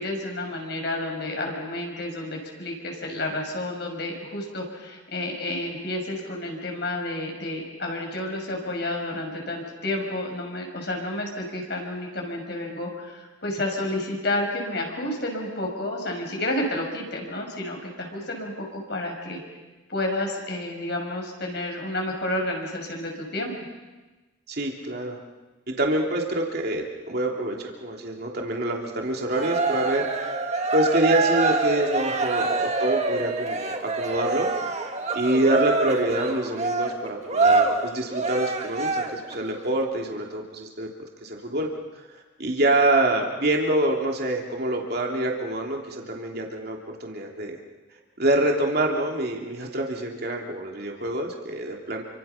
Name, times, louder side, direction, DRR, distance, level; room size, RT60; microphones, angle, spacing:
voice 1, 0.0-19.4 19.9-23.5, left 1 dB, 55° left, 1 dB, 6.2 m, -30 dB
voice 2, 24.5-25.2 25.7-30.1 30.7-34.5 35.1-40.9 41.2-41.7 42.4-47.6 48.2-52.0, right 1 dB, 50° right, 0 dB, 3.1 m, -26 dB
Cheering, 29.3-39.4, right 3 dB, 35° right, 1.9 m, -25 dB
29.5 x 25.5 x 5.9 m, 1.2 s
head